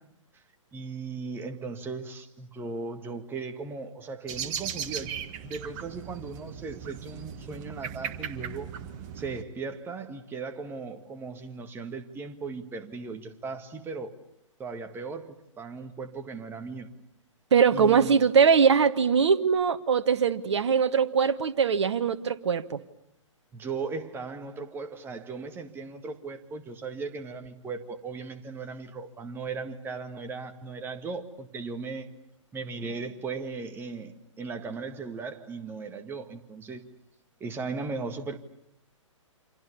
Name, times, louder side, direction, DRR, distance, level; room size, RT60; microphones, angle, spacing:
voice 1, 0.7-5.1 5.4-8.7 9.1-14.1 14.6-16.9 17.7-18.1 23.5-32.1 32.5-36.8 37.4-38.4, right 4 dB, 15° right, 1.8 m, -37 dB
sound 1, 4.3-9.4, right 8 dB, 35° right, 1.8 m, -37 dB
voice 2, 17.5-22.8, right 6 dB, 60° right, 1.3 m, -22 dB
29.0 x 26.5 x 7.1 m
figure-of-eight pair, 120°, 17 cm